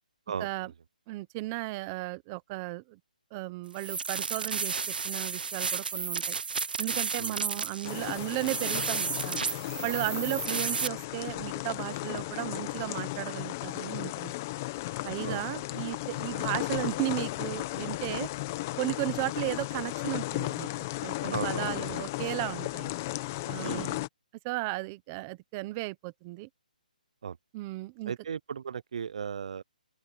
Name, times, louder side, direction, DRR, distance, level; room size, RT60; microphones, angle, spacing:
voice 1, 0.4-0.7 1.1-3.0 3.3-6.4 6.8-9.4 9.8-14.3 15.0-18.3 18.8-22.9 23.4-24.0 24.4-26.5 27.5-28.1, right 22 dB, 15° right, 0.8 m, -35 dB
sound 1, 3.7-10.9, right 5 dB, 85° right, 0.8 m, -33 dB
sound 2, 7.8-24.1, left 19 dB, 20° left, 0.7 m, -35 dB
voice 2, 21.3-22.0 23.6-23.9 27.2-27.4 28.1-29.6, right 7 dB, 45° right, 0.5 m, -36 dB
open air
hypercardioid pair, 175°, 5 cm